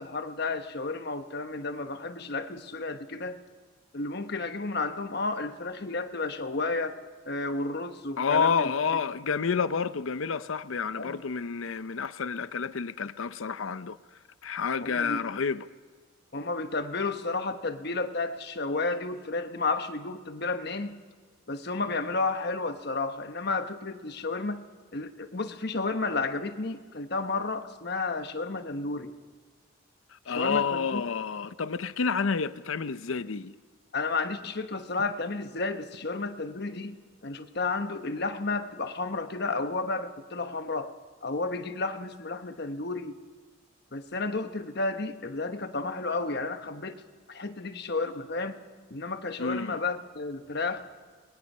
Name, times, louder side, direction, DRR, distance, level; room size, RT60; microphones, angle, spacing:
voice 1, 0.0-3.4 3.9-7.0 7.3-8.7 11.0-11.2 14.8-15.2 16.3-21.0 21.5-24.6 24.9-29.1 30.3-31.0 33.9-37.0 37.2-40.9 41.2-43.1 43.9-47.0 47.3-48.6 48.9-50.8, left 3 dB, 50° left, 8 dB, 1.1 m, -32 dB
voice 2, 8.2-14.0 14.4-15.7 30.1-33.6 49.4-49.8, left 5 dB, 70° left, 14 dB, 0.6 m, -29 dB
27.5 x 21.0 x 5.5 m, 1.5 s
head